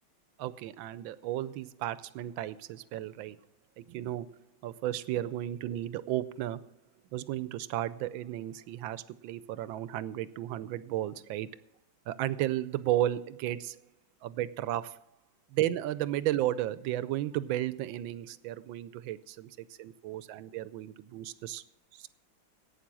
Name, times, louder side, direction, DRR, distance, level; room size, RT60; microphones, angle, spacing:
voice 1, 0.4-3.4 3.8-4.3 4.6-6.6 7.1-11.5 12.1-13.8 14.2-15.0 15.5-21.6 21.9-22.1, right 13 dB, 75° right, 16 dB, 1.3 m, -34 dB
11.5 x 8.8 x 6.1 m, 0.67 s
omnidirectional pair, 2.2 m